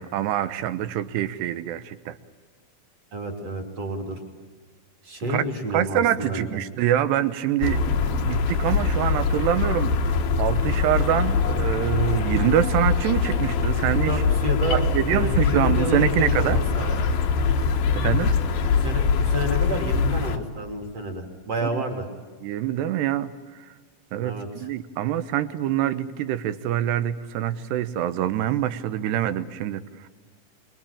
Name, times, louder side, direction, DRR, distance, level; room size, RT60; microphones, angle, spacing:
voice 1, 0.0-2.2 5.3-5.4 5.7-14.2 14.7-16.6 17.9-18.4 21.6-21.8 22.4-23.7 24.1-30.1, right 11 dB, 75° right, 12 dB, 2.7 m, -25 dB
voice 2, 3.1-4.2 5.0-6.6 14.1-16.9 18.6-22.1 24.2-24.7, equal, 35° right, 3 dB, 3.7 m, -30 dB
sound 1, 7.6-20.4, left 5 dB, 60° left, 2.8 m, -23 dB
26.0 x 22.5 x 8.7 m, 1.4 s
omnidirectional pair, 5.7 m